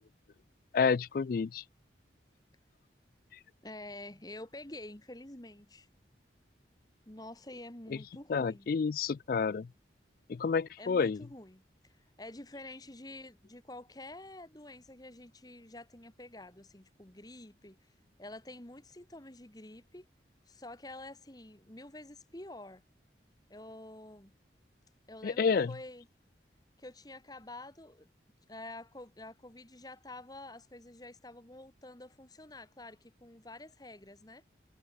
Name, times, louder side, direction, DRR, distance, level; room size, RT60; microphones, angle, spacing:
voice 1, 0.7-1.6 8.3-9.7 10.3-11.2 25.2-25.7, left 5 dB, 50° left, 0.3 m, -29 dB
voice 2, 3.6-5.9 7.1-8.7 10.8-20.1 20.5-22.8 23.5-24.3 25.1-26.1 26.8-28.1 28.5-34.4, left 2 dB, 20° left, 1.6 m, -48 dB
head